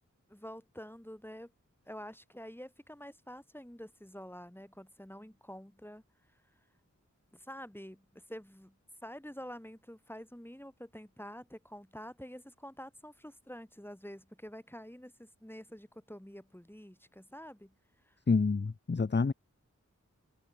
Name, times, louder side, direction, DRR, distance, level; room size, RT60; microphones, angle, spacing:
voice 1, 0.3-1.5 1.9-6.0 7.3-17.7 18.0-18.2, equal, 5° left, 6.8 m, -48 dB
voice 2, 18.3-19.3, left 4 dB, 35° left, 0.7 m, -28 dB
wide cardioid pair, 50°, 31 cm